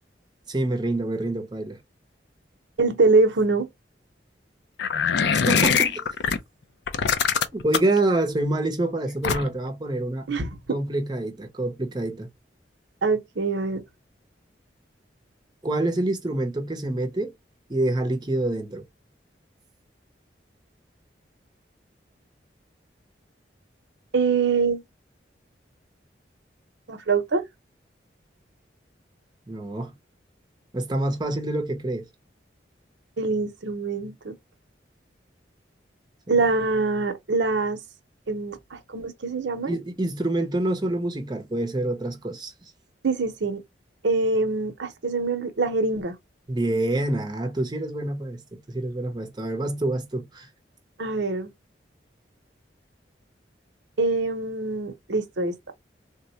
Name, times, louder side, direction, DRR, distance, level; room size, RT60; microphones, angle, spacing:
voice 1, 0.5-1.8 5.3-6.0 7.5-10.3 10.7-12.3 15.6-17.3 17.7-18.8 29.5-29.9 30.7-32.1 36.3-36.4 39.6-42.5 46.5-50.5, right 2 dB, 25° right, 0.6 m, -26 dB
voice 2, 2.8-3.7 10.3-10.8 13.0-13.8 24.1-24.8 26.9-27.4 33.2-34.3 36.3-37.8 38.3-39.8 43.0-43.6 44.0-46.2 51.0-51.5 54.0-55.7, right 3 dB, 75° right, 0.7 m, -24 dB
sound 1, 4.8-6.4 6.9-8.0 9.2-9.7, left 6 dB, 70° left, 0.4 m, -22 dB
3.5 x 2.1 x 2.7 m
head